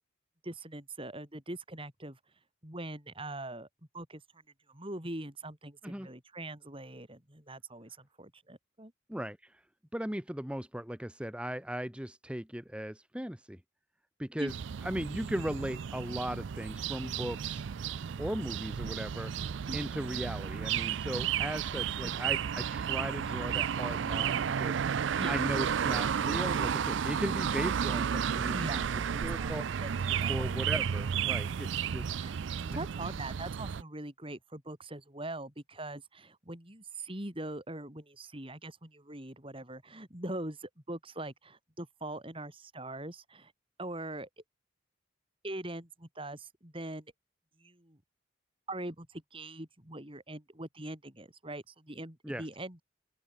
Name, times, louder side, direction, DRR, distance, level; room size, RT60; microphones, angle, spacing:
voice 1, 0.4-2.2 2.6-3.7 3.9-4.4 4.7-8.9 14.4-14.5 15.0-15.1 19.7-19.8 21.7-22.1 25.2-25.4 28.5-30.6 32.2-32.3 32.7-43.5 43.8-44.3 45.4-47.0 47.6-48.0 48.7-52.8, right 1 dB, 25° right, 4.3 m, -42 dB
voice 2, 9.9-13.6 14.2-14.5 14.8-17.9 18.2-19.3 19.7-24.8 25.3-29.6 30.3-32.1 32.7-32.8 52.2-52.4, equal, 5° right, 1.1 m, -37 dB
sound 1, 14.5-33.8, right 7 dB, 60° right, 0.4 m, -33 dB
open air
head